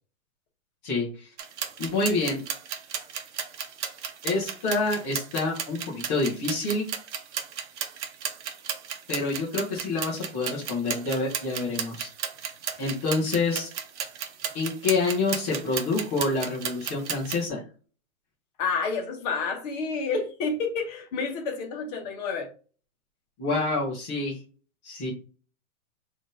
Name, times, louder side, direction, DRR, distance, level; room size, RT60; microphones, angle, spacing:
voice 1, 0.8-1.3 1.8-2.4 4.2-6.9 9.1-12.1 12.8-13.7 14.5-17.6 23.4-24.4 24.8-25.1, left 3 dB, 10° left, 0.4 m, -27 dB
sound 1, 1.4-17.5, right 8 dB, 55° right, 0.8 m, -34 dB
voice 2, 18.6-22.5, left 4 dB, 30° left, 1.0 m, -29 dB
3.6 x 2.6 x 3.5 m
hypercardioid pair, 155°, 41 cm